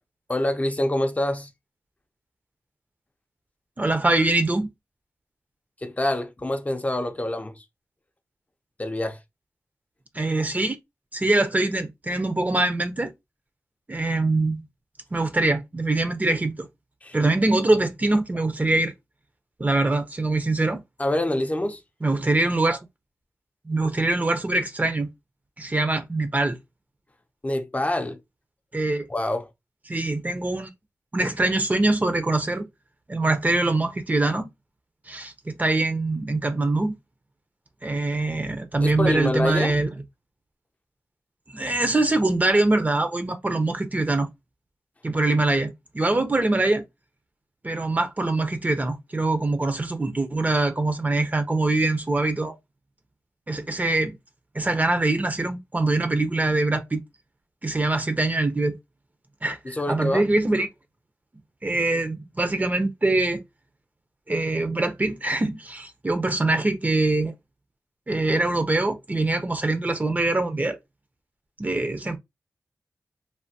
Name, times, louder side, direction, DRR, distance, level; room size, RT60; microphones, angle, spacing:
voice 1, 0.3-1.5 5.8-7.6 8.8-9.2 17.0-17.2 21.0-21.8 27.4-28.2 29.1-29.5 38.8-39.8 59.6-60.3, left 1 dB, 25° left, 0.5 m, -26 dB
voice 2, 3.8-4.7 10.1-10.8 11.1-13.1 13.9-14.6 15.1-16.7 17.1-18.9 19.6-20.8 22.0-22.8 23.7-25.1 25.6-26.6 28.7-29.1 29.9-30.7 31.1-32.7 33.1-34.5 35.1-36.9 37.8-39.9 41.5-44.3 45.0-46.8 47.6-52.6 53.5-54.2 54.5-57.0 57.6-58.8 59.4-60.7 61.6-63.4 64.3-67.3 68.1-70.8 71.6-72.2, right 2 dB, 25° right, 0.6 m, -23 dB
3.3 x 2.2 x 2.7 m
cardioid pair, 65°, 6 cm